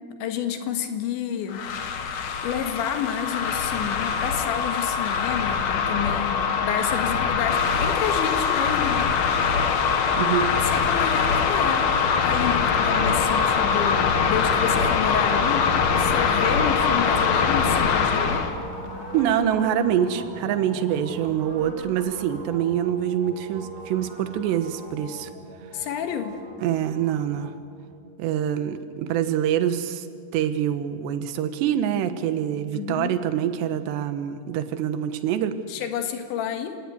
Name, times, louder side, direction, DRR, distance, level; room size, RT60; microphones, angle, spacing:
voice 1, 0.2-1.6 2.4-9.2 10.6-11.9 12.2-15.7 16.0-18.5 25.7-26.4 32.7-33.2 35.7-36.8, left 8 dB, 80° left, 6 dB, 3.9 m, -30 dB
sound 1, 1.5-18.5, left 6 dB, 60° left, 1.9 m, -23 dB
voice 2, 10.2-10.5 19.1-25.3 26.6-27.5 28.2-30.1 30.3-35.6, right 10 dB, 75° right, 10 dB, 3.3 m, -25 dB
sound 2, 12.0-28.3, right 1 dB, 25° right, 6.6 m, -39 dB
sound 3, 12.7-19.5, left 3 dB, 30° left, 3.6 m, -42 dB
28.0 x 18.0 x 9.6 m, 2.1 s
omnidirectional pair, 5.3 m